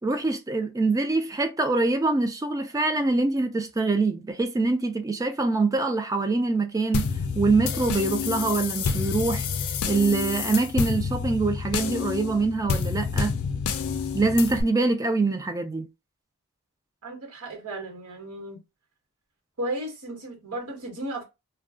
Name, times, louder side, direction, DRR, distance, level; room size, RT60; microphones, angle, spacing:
voice 1, 0.0-7.1 7.4-9.5 9.8-13.3 14.1-15.9, right 3 dB, 15° right, 0.3 m, -24 dB
sound 1, 6.9-14.6, left 5 dB, 70° left, 0.4 m, -28 dB
voice 2, 17.0-18.6 19.6-21.2, right 1 dB, 75° right, 1.3 m, -34 dB
2.3 x 2.2 x 3.6 m
head